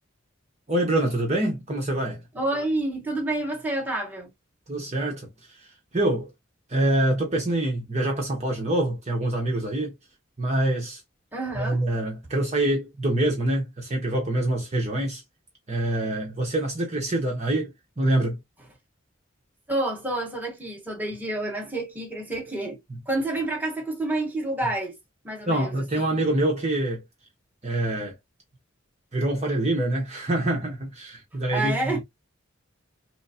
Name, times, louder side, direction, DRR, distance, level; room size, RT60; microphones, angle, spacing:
voice 1, 0.7-2.2 4.7-5.3 5.9-6.3 6.7-9.9 10.4-11.0 11.6-15.2 15.7-18.4 22.9-23.0 25.5-27.0 27.6-28.1 29.1-32.0, right 1 dB, 35° right, 1.1 m, -25 dB
voice 2, 2.3-4.3 11.3-11.8 19.7-22.8 23.1-25.0 25.2-25.8 31.5-32.0, right 2 dB, 10° right, 1.4 m, -28 dB
6.1 x 2.1 x 2.8 m
head